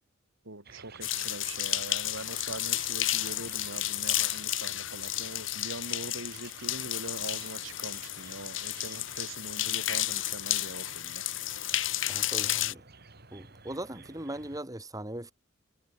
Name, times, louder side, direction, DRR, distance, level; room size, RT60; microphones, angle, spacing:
voice 1, 0.4-11.2, right 2 dB, 85° right, 5.9 m, -42 dB
sound 1, 0.6-14.6, right 3 dB, 55° right, 4.9 m, -54 dB
sound 2, 1.0-12.7, left 14 dB, 70° left, 2.0 m, -32 dB
voice 2, 12.1-12.8 13.3-15.3, right 1 dB, 20° right, 3.9 m, -39 dB
head